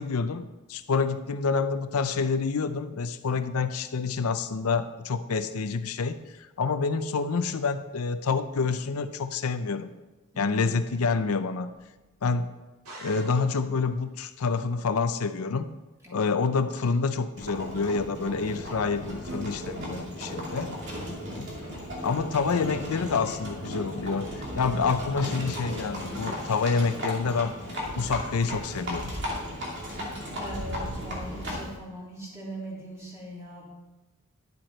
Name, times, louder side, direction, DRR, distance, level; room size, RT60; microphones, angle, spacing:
voice 1, 0.0-9.9 10.4-11.7 12.2-12.5 13.0-15.7 16.1-20.7 21.3-21.5 22.0-27.5 27.9-29.0, left 4 dB, 80° left, 10 dB, 0.5 m, -28 dB
voice 2, 10.3-10.9 16.0-16.7 20.8-21.3 30.4-33.7, right 1 dB, 15° right, -7 dB, 3.4 m, -41 dB
sound 1, 12.8-13.9, right 1 dB, 85° right, 2.4 m, -45 dB
Livestock farm animals working animals, 17.4-31.8, equal, 50° right, 2.6 m, -35 dB
10.5 x 7.8 x 4.4 m, 1.1 s
head